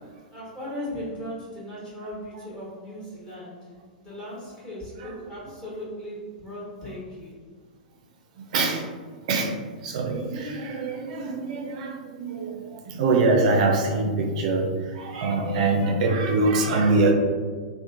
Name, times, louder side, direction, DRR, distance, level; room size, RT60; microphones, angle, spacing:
voice 1, 0.2-3.7 4.0-7.4, equal, 15° left, -8 dB, 1.1 m, -37 dB
voice 2, 8.4-8.8 9.3-9.5 9.8-14.7 14.9-17.1, right 3 dB, 55° right, 2 dB, 0.4 m, -24 dB
2.8 x 2.1 x 2.5 m, 1.5 s
figure-of-eight pair, 105°, 5 cm